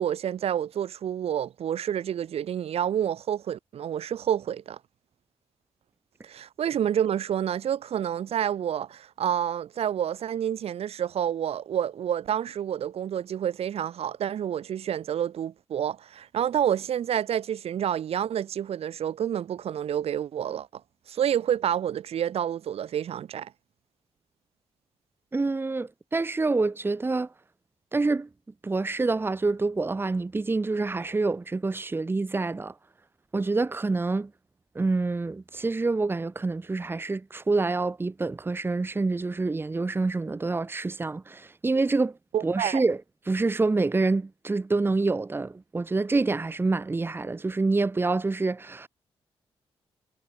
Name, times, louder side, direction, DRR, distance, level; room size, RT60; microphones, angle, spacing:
voice 1, 0.0-4.8 6.2-20.7 21.1-23.5 42.3-42.8, right 9 dB, 80° right, 4.9 m, -28 dB
voice 2, 25.3-27.3 27.9-28.3 28.6-32.7 33.3-34.3 34.7-42.2 42.4-43.0 43.3-48.9, right 3 dB, 20° right, 1.6 m, -27 dB
wide cardioid pair, 120°, 10 cm